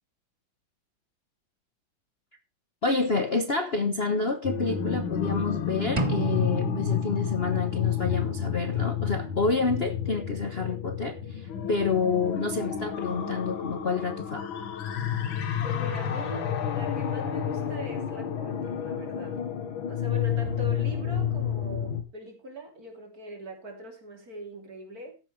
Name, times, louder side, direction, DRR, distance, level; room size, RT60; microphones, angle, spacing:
voice 1, 2.8-14.4, left 4 dB, 35° left, 1.1 m, -28 dB
sound 1, 4.4-22.0, left 8 dB, 75° left, 2.1 m, -30 dB
sound 2, 6.0-7.9, right 4 dB, 25° right, 0.7 m, -32 dB
voice 2, 15.6-19.5 19.9-25.2, equal, 45° right, 3.6 m, -41 dB
13.5 x 10.0 x 3.3 m
omnidirectional pair, 2.2 m